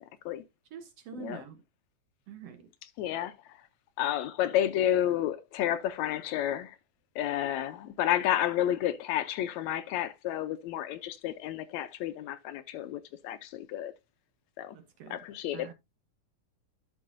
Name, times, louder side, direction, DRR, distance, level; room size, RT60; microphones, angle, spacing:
voice 1, 0.7-1.6 2.3-2.6 14.7-15.2 15.5-15.7, right 8 dB, 70° right, 1.6 m, -45 dB
voice 2, 3.0-3.3 4.0-6.8 7.2-13.9 14.6-14.8 15.1-15.7, left 11 dB, 80° left, 1.8 m, -31 dB
12.5 x 5.3 x 2.5 m
omnidirectional pair, 3.5 m